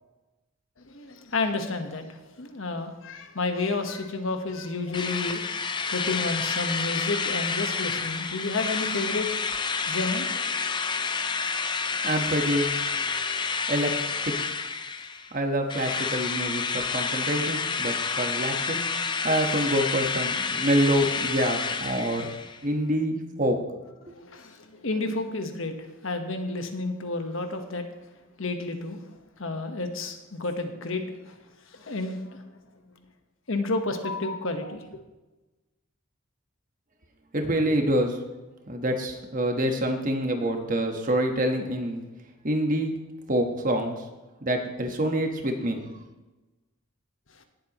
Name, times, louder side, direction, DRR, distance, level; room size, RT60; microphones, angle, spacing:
voice 1, 0.8-5.4 5.8-9.3 9.9-10.7 24.1-27.8 28.4-29.0 29.4-31.4 31.7-32.5 33.5-34.9 47.4-47.5, left 3 dB, 65° left, 6 dB, 1.2 m, -31 dB
Drill, 4.9-15.3 15.7-22.6, left 5 dB, 20° left, 0.5 m, -29 dB
voice 2, 12.0-12.7 13.7-13.9 15.3-18.8 19.2-22.3 22.6-23.6 37.3-38.2 38.7-42.0 42.4-42.9 43.3-43.9 44.4-45.8, right 1 dB, 40° right, 4 dB, 1.2 m, -26 dB
18.0 x 7.9 x 3.0 m, 1.1 s
head